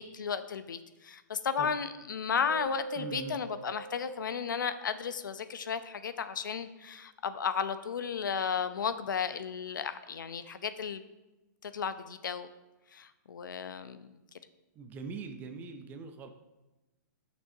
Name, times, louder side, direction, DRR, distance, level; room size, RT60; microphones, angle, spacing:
voice 1, 0.0-11.0 11.6-12.5 12.9-14.2, left 7 dB, 90° left, 12 dB, 0.6 m, -34 dB
Keyboard (musical), 2.5-5.2, right 4 dB, 65° right, 1.8 m, -42 dB
voice 2, 3.0-3.4 14.8-16.3, right 4 dB, 15° right, 7 dB, 0.5 m, -41 dB
9.6 x 6.2 x 2.7 m, 1.1 s
hypercardioid pair, 155°, 10 cm